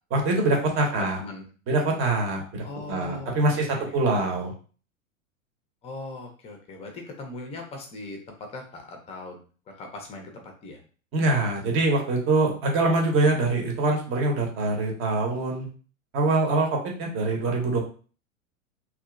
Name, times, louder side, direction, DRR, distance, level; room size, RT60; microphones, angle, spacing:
voice 1, 0.1-1.2 1.7-4.5 11.1-15.7 16.1-17.8, right 2 dB, 30° right, 1 dB, 0.9 m, -24 dB
voice 2, 0.7-1.4 2.6-4.0 5.8-9.4 9.7-10.8, left 2 dB, 15° left, 3 dB, 0.6 m, -40 dB
2.8 x 2.3 x 2.4 m, 0.39 s
figure-of-eight pair, 95°, 43 cm